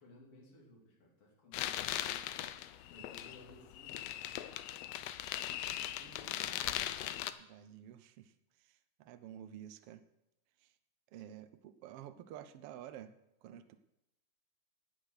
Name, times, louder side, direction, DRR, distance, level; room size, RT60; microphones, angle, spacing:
voice 1, 0.0-2.3 2.8-4.5 5.3-6.8, left 1 dB, 50° left, -3 dB, 3.8 m, -59 dB
sound 1, 1.5-7.3, left 12 dB, 75° left, 1.6 m, -39 dB
voice 2, 7.4-8.3 8.6-10.0 10.6-10.7 11.1-13.8, right 11 dB, 70° right, 11 dB, 1.4 m, -51 dB
18.0 x 6.1 x 6.4 m, 0.87 s
omnidirectional pair, 3.3 m